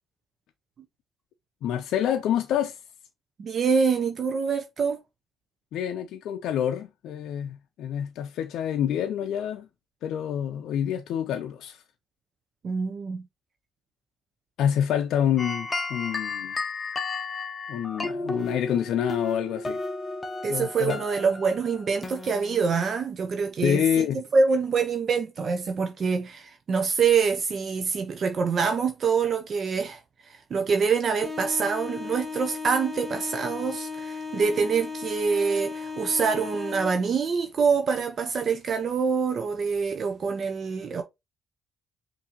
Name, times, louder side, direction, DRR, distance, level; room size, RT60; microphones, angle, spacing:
voice 1, 1.6-2.8 5.7-9.7 10.0-11.8 14.6-16.6 17.7-19.8 20.5-21.0 23.6-24.2, left 9 dB, 80° left, 0.4 m, -27 dB
voice 2, 3.4-5.0 12.6-13.2 20.4-23.8 24.1-41.0, right 5 dB, 50° right, 0.5 m, -25 dB
sound 1, 15.4-22.9, left 3 dB, 25° left, 0.7 m, -34 dB
sound 2, 31.2-37.2, left 5 dB, 10° right, 1.6 m, -36 dB
5.5 x 2.6 x 2.8 m
cardioid pair, 90°, 0 cm